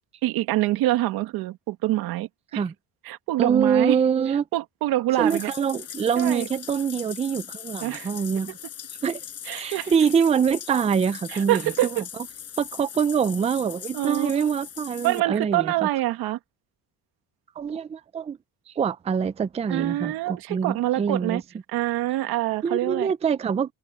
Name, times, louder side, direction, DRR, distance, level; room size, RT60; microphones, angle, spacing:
voice 1, 0.2-2.6 3.0-4.0 4.5-5.5 6.2-6.5 7.8-8.1 9.5-9.9 11.3-12.0 13.9-14.5 15.0-16.4 19.7-21.4 21.7-23.1, right 16 dB, 90° right, 2.2 m, -25 dB
voice 2, 3.4-4.4 5.2-8.6 9.0-9.2 9.5-11.6 11.9-12.0 12.6-15.9 17.6-18.4 18.8-21.4 22.6-23.7, right 7 dB, 20° right, 0.5 m, -24 dB
Bathtub (filling or washing), 5.1-15.2, left 9 dB, 40° left, 7.5 m, -40 dB
cardioid pair, 155°, 36 cm